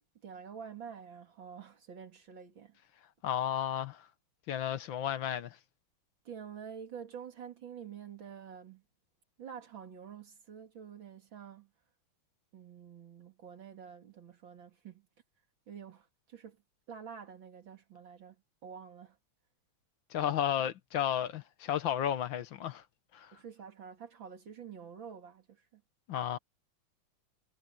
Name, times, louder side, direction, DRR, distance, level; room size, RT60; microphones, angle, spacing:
voice 1, 0.2-2.8 6.2-8.8 9.4-11.7 12.5-15.1 15.7-16.6 16.9-19.2 23.3-25.8, right 7 dB, 65° right, 3.2 m, -48 dB
voice 2, 3.2-4.1 4.5-5.6 20.1-22.8 23.1-23.3 26.1-26.4, left 10 dB, 70° left, 1.7 m, -33 dB
omnidirectional pair, 2.2 m